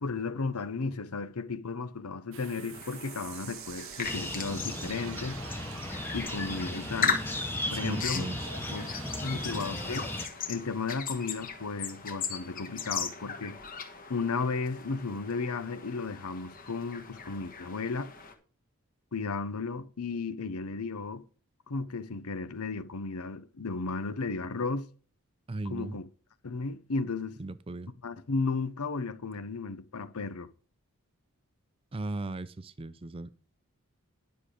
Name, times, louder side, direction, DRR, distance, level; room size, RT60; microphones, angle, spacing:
voice 1, 0.0-5.4 6.1-7.2 7.7-8.3 8.7-8.9 9.2-10.1 10.5-13.6 14.1-18.1 19.1-21.2 21.7-24.9 25.7-26.1 26.4-27.4 28.0-30.5, left 4 dB, 90° left, 0.8 m, -34 dB
sound 1, 2.3-10.3, right 10 dB, 65° right, 0.7 m, -46 dB
sound 2, 2.7-18.3, left 6 dB, 40° left, 1.3 m, -38 dB
sound 3, 4.0-10.3, left 1 dB, 10° left, 1.0 m, -36 dB
voice 2, 7.7-8.7 9.0-9.7 25.5-26.0 27.4-27.9 31.9-33.4, right 2 dB, 25° right, 0.5 m, -38 dB
10.0 x 6.6 x 5.0 m
head